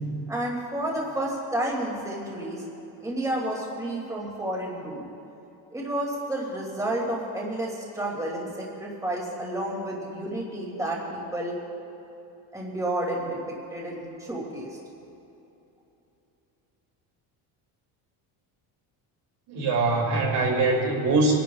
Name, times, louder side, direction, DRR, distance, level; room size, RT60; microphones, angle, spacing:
voice 1, 0.3-2.6 3.0-5.1 5.7-11.6 12.5-13.4 13.7-14.8, right 1 dB, 5° right, -3 dB, 2.4 m, -31 dB
voice 2, 19.5-21.4, right 3 dB, 60° right, 0 dB, 2.6 m, -23 dB
27.5 x 11.0 x 2.3 m, 3.0 s
cardioid pair, 125°, 44 cm